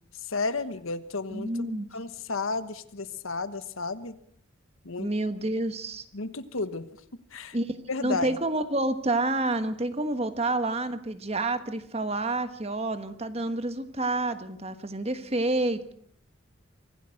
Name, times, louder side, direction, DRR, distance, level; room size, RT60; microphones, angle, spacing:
voice 1, 0.3-1.5 1.9-4.2 4.8-5.1 6.1-6.9 7.3-7.6 7.9-8.3, left 3 dB, 75° left, 12 dB, 1.3 m, -32 dB
voice 2, 1.3-1.9 5.0-6.0 7.5-15.9, right 2 dB, 30° right, 10 dB, 1.3 m, -29 dB
25.0 x 17.0 x 6.5 m, 0.65 s
head